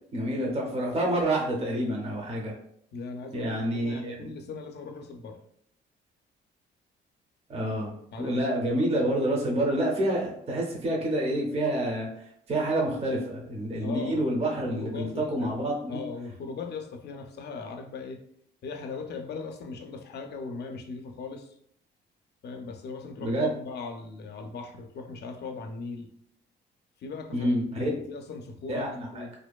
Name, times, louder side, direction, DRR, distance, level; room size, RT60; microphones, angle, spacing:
voice 1, 0.1-2.5 3.3-4.1 7.5-7.9 8.2-12.1 12.5-16.0 23.2-23.5 27.3-27.9 28.7-29.2, right 1 dB, 30° right, -1 dB, 0.5 m, -28 dB
voice 2, 2.9-5.4 8.1-8.5 13.8-18.2 18.6-21.5 22.4-26.1 27.0-29.3, left 4 dB, 55° left, 6 dB, 0.4 m, -39 dB
2.5 x 2.2 x 2.2 m, 0.70 s
cardioid pair, 90°, 20 cm